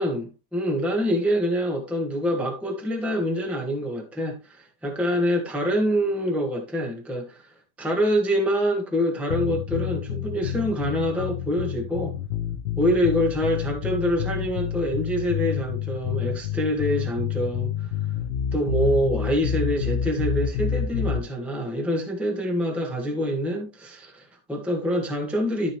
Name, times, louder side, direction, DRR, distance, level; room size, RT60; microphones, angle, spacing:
voice 1, 0.0-12.1 12.8-17.9 18.5-25.8, equal, ahead, 1.8 m, -26 dB
sound 1, 9.3-21.2, left 8 dB, 90° left, 1.6 m, -28 dB
13.0 x 5.5 x 3.3 m
omnidirectional pair, 1.8 m